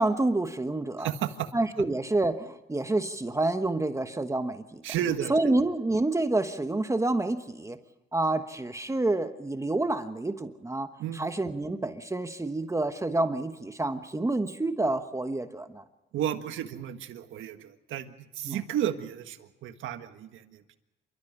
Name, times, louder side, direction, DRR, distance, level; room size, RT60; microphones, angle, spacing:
voice 1, 0.0-1.1 1.5-4.8 5.3-7.8 8.1-15.8 18.5-18.6, right 2 dB, 15° right, 8 dB, 1.3 m, -28 dB
voice 2, 1.0-1.5 4.8-5.5 11.0-11.2 16.1-20.8, right 10 dB, 80° right, 8 dB, 1.6 m, -33 dB
28.0 x 14.0 x 7.4 m, 1.0 s
cardioid pair, 90°, 20 cm